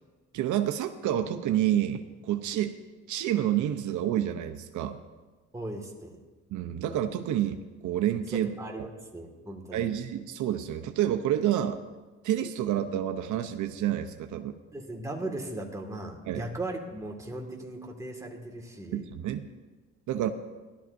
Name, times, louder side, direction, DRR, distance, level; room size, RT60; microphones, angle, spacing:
voice 1, 0.3-2.7 3.1-5.0 6.5-8.9 9.7-11.8 12.2-14.5 16.3-16.5 18.9-19.5 20.1-20.3, right 11 dB, 75° right, 6 dB, 0.7 m, -29 dB
voice 2, 5.5-6.2 8.3-9.9 14.7-19.1, right 1 dB, 10° right, 0 dB, 1.9 m, -38 dB
16.5 x 12.0 x 2.6 m, 1.3 s
cardioid pair, 90°, 30 cm